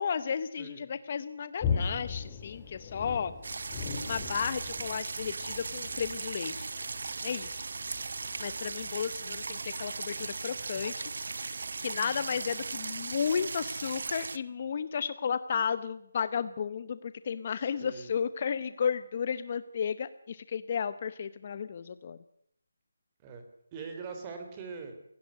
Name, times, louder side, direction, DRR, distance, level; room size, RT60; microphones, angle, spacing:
voice 1, 0.0-3.3 4.1-6.7 7.2-7.6 8.4-22.2, left 7 dB, 35° left, 14 dB, 0.8 m, -33 dB
voice 2, 0.6-0.9 10.5-10.6 17.8-18.2 23.2-23.4 23.7-25.0, right 5 dB, 20° right, 5 dB, 3.2 m, -42 dB
sound 1, 1.6-10.0 10.2-10.4, left 6 dB, 15° left, 2.2 m, -38 dB
sound 2, 3.4-14.4, right 4 dB, 65° right, 0.8 m, -37 dB
18.0 x 16.5 x 9.4 m, 0.71 s
hypercardioid pair, 170°, 0 cm